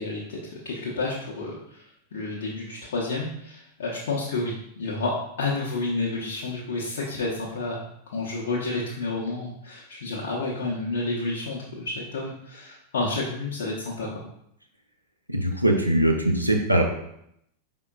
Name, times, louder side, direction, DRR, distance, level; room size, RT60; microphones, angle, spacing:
voice 1, 0.0-7.9 8.1-14.2, left 3 dB, 60° left, -3 dB, 0.7 m, -30 dB
voice 2, 15.3-16.8, right 1 dB, 90° right, 2 dB, 0.6 m, -21 dB
5.0 x 3.7 x 2.3 m, 0.75 s
figure-of-eight pair, 90°, 0 cm